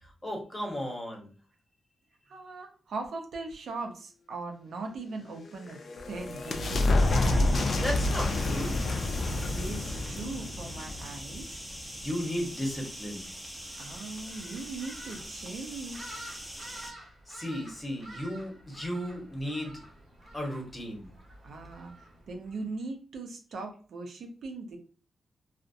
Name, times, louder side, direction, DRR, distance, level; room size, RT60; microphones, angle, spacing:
voice 1, 0.0-1.3 7.7-8.7 12.0-13.3 17.3-19.7 20.3-21.1, equal, 20° left, 0 dB, 0.9 m, -35 dB
voice 2, 2.3-5.8 6.1-7.5 9.5-11.6 13.8-16.0 21.4-24.8, right 3 dB, 75° right, 3 dB, 0.5 m, -40 dB
sound 1, 5.4-11.8, left 2 dB, 60° left, 0.4 m, -28 dB
sound 2, 6.9-16.9, equal, ahead, 0.6 m, -43 dB
sound 3, 13.6-22.7, right 1 dB, 50° right, 0.9 m, -50 dB
2.4 x 2.0 x 2.6 m, 0.38 s
cardioid pair, 90°, 0 cm